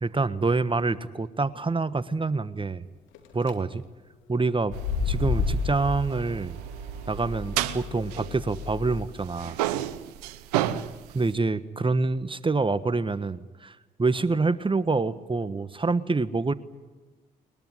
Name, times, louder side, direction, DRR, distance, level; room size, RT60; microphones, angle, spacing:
voice 1, 0.0-2.8 3.3-3.8 4.3-4.8 5.1-6.5 7.1-9.6 11.1-16.5, right 3 dB, 25° right, 14 dB, 1.4 m, -26 dB
sound 1, 3.1-3.5 4.6-9.0, left 5 dB, 75° left, 2.7 m, -31 dB
sound 2, 4.7-9.0 9.2-11.3, right 13 dB, 90° right, 0.9 m, -32 dB
21.5 x 21.5 x 9.9 m, 1.2 s
hypercardioid pair, 50°, 20 cm